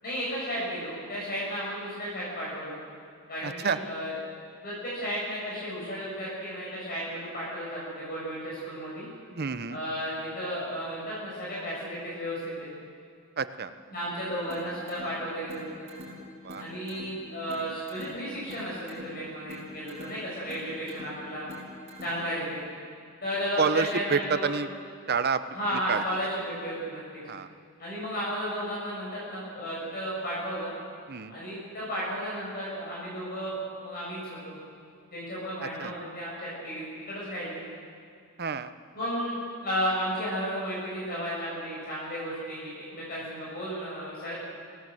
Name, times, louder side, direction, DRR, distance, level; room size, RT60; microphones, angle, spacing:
voice 1, 0.0-2.8 3.3-4.2 4.6-9.1 9.7-12.7 13.9-15.9 16.6-21.5 22.0-22.6 23.2-24.5 25.5-27.0 27.8-30.7 31.3-34.6 35.1-37.6 38.9-44.3, equal, 45° left, -6 dB, 7.2 m, -33 dB
voice 2, 3.4-3.8 9.3-9.8 13.4-13.7 16.4-16.6 23.6-24.7 25.1-25.4 25.9-26.0 27.3-27.5 31.1-31.3 35.8-35.9 38.4-38.7, right 5 dB, 45° right, 11 dB, 0.9 m, -28 dB
sound 1, 14.5-22.5, left 1 dB, 30° right, 6.7 m, -45 dB
25.0 x 18.5 x 7.9 m, 2.3 s
head